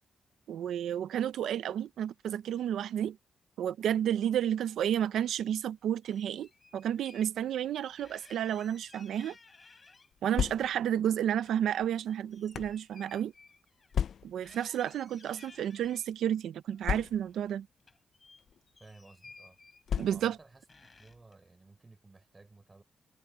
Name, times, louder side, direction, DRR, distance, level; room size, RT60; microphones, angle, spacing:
voice 1, 0.5-3.2 3.6-9.4 10.2-13.3 14.2-17.7 20.0-20.4, right 10 dB, 90° right, 0.7 m, -31 dB
sound 1, 4.5-5.6 6.0-7.3 7.6-7.7 8.0-10.4 10.7-14.2 14.4-16.1 16.7-17.5 17.8-20.3 20.7-21.4, left 4 dB, 35° left, 5.2 m, -58 dB
sound 2, 10.1-11.0 11.8-12.8 13.9-14.5 15.4-15.6 15.8-15.9 16.8-17.5 18.4-18.6 19.9-20.5, left 8 dB, 70° left, 0.5 m, -34 dB
voice 2, 18.8-19.6 20.1-22.8, right 3 dB, 25° right, 6.5 m, -56 dB
cardioid pair, 95°, 0 cm